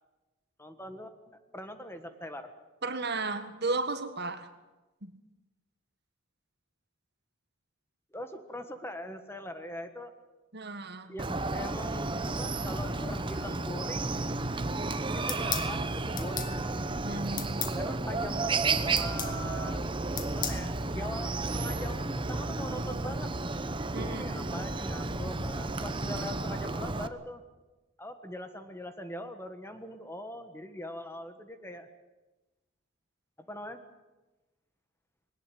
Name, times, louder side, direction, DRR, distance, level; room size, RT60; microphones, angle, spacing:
voice 1, 0.6-2.5 8.1-10.1 11.1-14.2 15.1-16.6 17.7-19.8 20.2-23.3 23.9-27.4 28.0-31.9 33.5-33.8, left 1 dB, 10° left, 8 dB, 1.5 m, -42 dB
voice 2, 2.8-4.5 5.0-5.1 10.5-11.1 17.0-17.7 23.9-24.2, right 3 dB, 50° right, 9 dB, 1.7 m, -34 dB
Chicken rooster, 11.2-27.1, right 3 dB, 25° right, 0.9 m, -32 dB
sound 1, 15.3-15.7 16.2-16.5 17.4-17.8 19.0-19.4 20.2-20.6, left 9 dB, 40° left, 1.9 m, -34 dB
21.0 x 18.5 x 9.3 m, 1.1 s
head